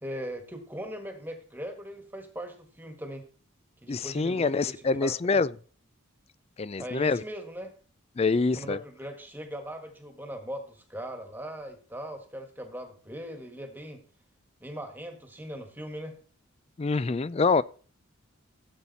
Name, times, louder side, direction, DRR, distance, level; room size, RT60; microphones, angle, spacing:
voice 1, 0.0-3.3 3.8-5.4 6.8-7.7 8.6-14.0 14.6-16.1, equal, 10° right, 1.5 m, -40 dB
voice 2, 3.9-5.5 6.6-7.2 8.2-8.8 16.8-17.6, left 4 dB, 30° left, 0.4 m, -25 dB
16.0 x 7.3 x 4.1 m
head